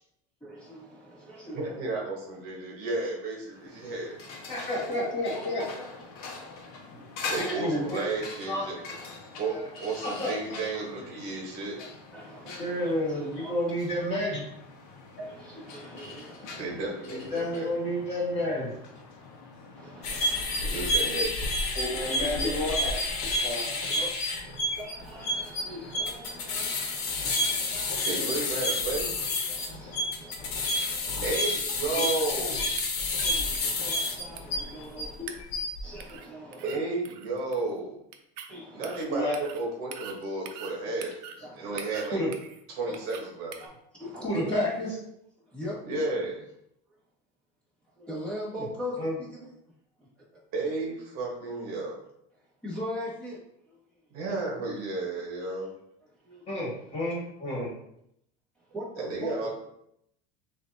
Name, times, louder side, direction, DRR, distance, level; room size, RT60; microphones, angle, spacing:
voice 1, 0.4-1.8 7.2-7.4 11.8-11.9 12.1-13.5 15.2-16.9 19.7-20.8 21.9-22.6 23.9-24.1 24.8-28.4 29.5-31.5 31.9-32.1 33.2-35.4 35.8-36.9 38.5-39.0 41.4-41.8 42.9-43.0 43.6-43.7 43.9-44.9 45.4-45.8 48.0-49.5 50.0-50.1 52.6-53.4 53.7-53.8 56.2-56.6 58.7-59.5, equal, 5° left, -8 dB, 1.7 m, -40 dB
voice 2, 1.5-4.2 7.3-8.8 9.4-11.8 16.6-17.7 20.6-21.3 28.1-29.1 31.2-32.7 36.6-38.0 38.7-41.1 41.6-42.2 42.7-43.5 45.8-46.4 50.5-52.0 54.1-55.7 59.0-59.5, right 3 dB, 50° right, -2 dB, 1.2 m, -32 dB
sound 1, 3.5-20.9, left 3 dB, 50° left, 0.9 m, -44 dB
voice 3, 4.5-5.6 7.4-8.0 8.5-8.6 9.5-9.6 10.2-10.3 12.6-14.4 17.1-18.8 21.8-22.9 23.4-23.7 39.1-39.3 42.1-42.3 44.2-44.9 48.6-48.7 49.0-49.1 56.5-57.7, left 1 dB, 30° left, -5 dB, 1.7 m, -30 dB
sound 2, 20.0-35.0 35.4-35.8, left 2 dB, 70° left, 1.1 m, -29 dB
sound 3, 32.8-33.3 33.5-33.6 33.9-34.0 34.4-35.0 35.3-35.7 36.0-36.3 36.5-36.8 37.1-37.7 38.1-38.5 38.8-39.0 39.3-39.6 39.9-40.7 41.0-41.4 41.8-42.6 42.9-43.2 43.5-43.7, right 8 dB, 80° right, 0.6 m, -43 dB
6.7 x 2.6 x 2.7 m, 0.76 s
cardioid pair, 170°, 21 cm